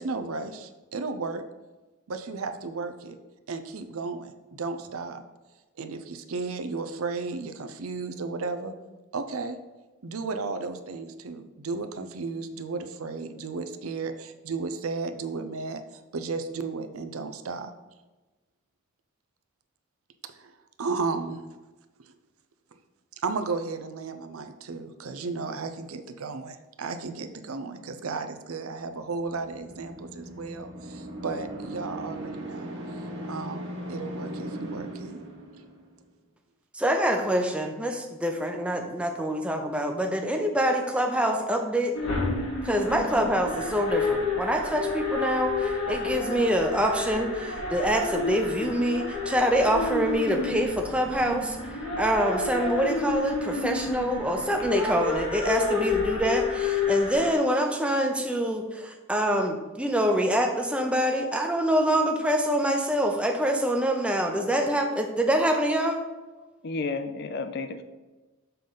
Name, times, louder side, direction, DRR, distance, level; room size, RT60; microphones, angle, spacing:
voice 1, 0.0-1.4 2.1-3.2 3.5-5.2 5.8-8.7 9.1-9.6 10.0-17.7 20.3-21.4 22.0-22.1 23.2-32.7 33.3-35.2 35.5-35.6, right 4 dB, 80° right, 8 dB, 0.6 m, -34 dB
sound 1, 29.0-36.0, right 1 dB, 55° right, 1.5 m, -38 dB
voice 2, 36.7-41.9 42.6-66.0, equal, 5° right, 3 dB, 0.6 m, -25 dB
sound 2, 41.9-57.3, left 3 dB, 85° left, 1.5 m, -30 dB
voice 3, 66.6-67.8, left 3 dB, 50° left, 9 dB, 0.5 m, -31 dB
6.8 x 3.8 x 5.6 m, 1.2 s
head